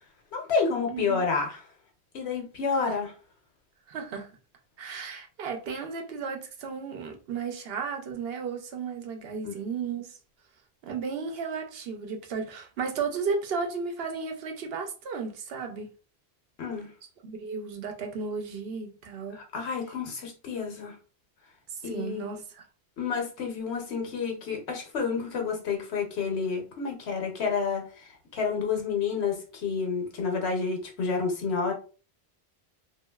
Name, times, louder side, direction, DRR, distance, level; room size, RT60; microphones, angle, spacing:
voice 1, 0.3-1.6 2.1-3.1 9.4-9.5 16.6-16.9 19.3-20.9 21.8-22.4 23.0-31.7, left 5 dB, 80° left, 1.1 m, -30 dB
voice 2, 0.9-1.3 2.8-3.0 3.9-4.3 4.8-10.2 10.8-15.9 17.2-19.4 21.7-22.6, right 5 dB, 70° right, 0.8 m, -34 dB
2.9 x 2.6 x 2.2 m
omnidirectional pair, 1.1 m